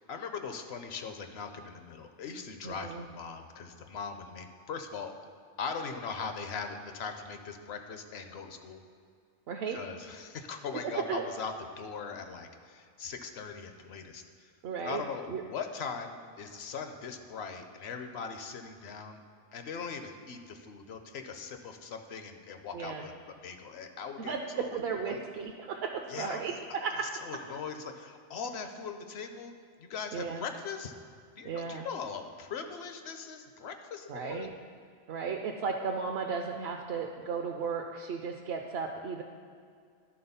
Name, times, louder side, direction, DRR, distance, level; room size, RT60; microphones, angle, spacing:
voice 1, 0.1-5.1 5.6-8.8 9.7-14.5 14.8-19.2 19.5-25.2 26.1-26.5 27.0-29.5 29.8-30.9 31.4-34.5, left 5 dB, 65° left, 6 dB, 0.9 m, -40 dB
voice 2, 2.6-3.0 9.5-9.8 11.1-11.2 14.6-15.0 15.3-15.4 22.7-23.0 24.3-27.1 30.1-30.4 31.4-31.9 34.1-34.5 35.1-39.2, right 5 dB, 65° right, 2 dB, 0.8 m, -35 dB
11.0 x 3.8 x 5.5 m, 2.2 s
omnidirectional pair, 1.2 m